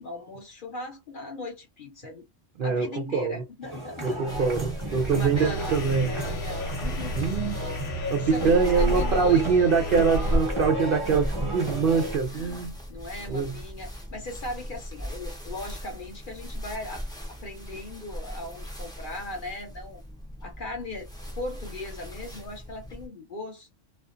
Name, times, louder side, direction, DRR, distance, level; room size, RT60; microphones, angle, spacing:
voice 1, 0.0-2.3 2.6-4.6 5.1-7.3 8.2-9.7 12.3-20.0 20.4-21.1 21.4-23.7, left 2 dB, 50° left, 0.7 m, -39 dB
voice 2, 2.6-3.4 4.0-6.2 7.2-7.6 8.1-12.7 13.3-13.5, right 5 dB, 60° right, 0.6 m, -24 dB
sound 1, 3.6-12.2, equal, 25° right, 0.9 m, -34 dB
sound 2, 4.3-23.1, equal, 5° left, 0.5 m, -35 dB
sound 3, 5.4-10.4, left 1 dB, 80° left, 1.1 m, -36 dB
2.4 x 2.3 x 2.4 m
omnidirectional pair, 1.3 m